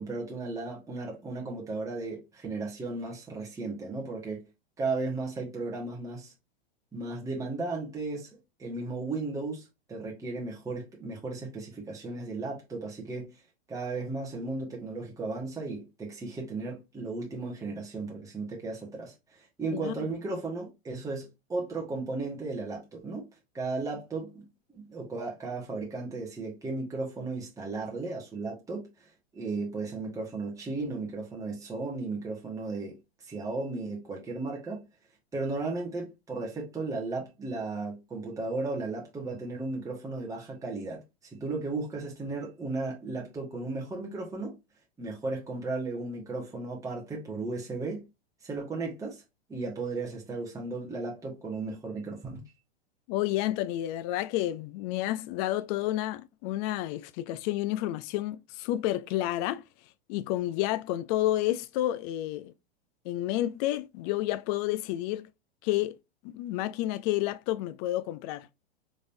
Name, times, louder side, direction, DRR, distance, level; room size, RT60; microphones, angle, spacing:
voice 1, 0.0-4.5 4.8-6.3 6.9-8.3 8.6-13.3 13.7-23.2 23.5-24.5 24.7-33.0 33.3-34.8 35.3-41.0 41.3-44.5 45.0-48.0 48.4-49.2 49.5-52.4, right 3 dB, 10° right, 1.3 m, -35 dB
voice 2, 53.1-59.6 60.1-62.5 63.1-65.3 65.6-66.0 66.2-68.5, left 14 dB, 40° left, 0.4 m, -30 dB
4.0 x 3.5 x 2.6 m
hypercardioid pair, 120°, 32 cm